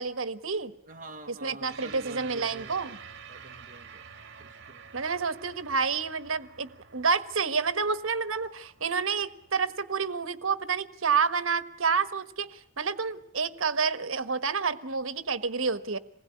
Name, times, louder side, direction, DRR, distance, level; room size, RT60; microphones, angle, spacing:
voice 1, 0.0-0.7 1.3-3.0 4.9-16.0, right 5 dB, 75° right, 1.4 m, -29 dB
voice 2, 0.9-3.0 3.3-4.0 4.4-4.8, right 2 dB, 40° right, 1.2 m, -47 dB
sound 1, 1.7-10.4, right 6 dB, 60° right, 1.9 m, -49 dB
27.5 x 20.5 x 9.6 m
head